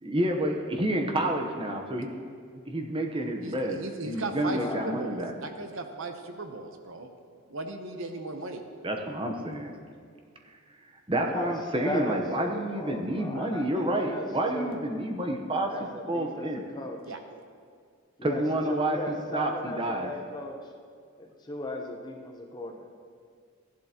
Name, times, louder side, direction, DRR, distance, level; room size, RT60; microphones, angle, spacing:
voice 1, 0.0-2.2 2.7-5.3 8.8-9.7 11.1-16.6 18.2-20.1, right 1 dB, 25° right, 3 dB, 0.9 m, -29 dB
voice 2, 3.4-7.1 7.5-8.6 17.1-17.2, right 2 dB, 65° right, 6 dB, 0.9 m, -37 dB
voice 3, 4.5-5.0 11.1-11.6 11.8-14.3 14.5-14.8 15.7-17.0 18.2-18.4 18.9-20.6 21.2-22.9, left 2 dB, 20° left, 2 dB, 0.8 m, -37 dB
15.5 x 11.0 x 3.0 m, 2.1 s
head